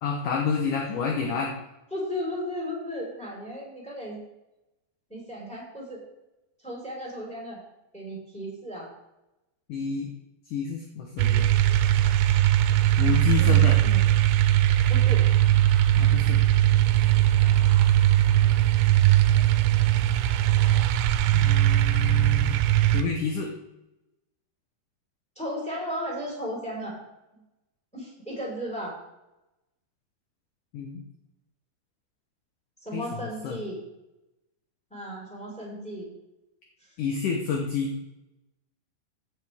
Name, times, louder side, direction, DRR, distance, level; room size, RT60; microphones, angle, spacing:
voice 1, 0.0-1.6 9.7-10.1 10.5-11.5 13.0-13.8 16.0-16.4 21.3-22.6 22.9-23.5 30.7-31.0 32.9-33.6 37.0-37.9, left 6 dB, 70° left, 1 dB, 2.0 m, -29 dB
voice 2, 1.9-4.2 5.1-6.0 6.6-7.6 7.9-8.9 13.4-14.1 14.9-15.3 25.4-27.0 27.3-27.4 27.9-28.9 32.8-33.8 34.9-36.1 36.8-36.9, equal, ahead, -3 dB, 3.9 m, -35 dB
sound 1, 11.2-23.0, right 13 dB, 90° right, 3.0 m, -20 dB
16.0 x 8.1 x 3.6 m, 0.93 s
omnidirectional pair, 5.1 m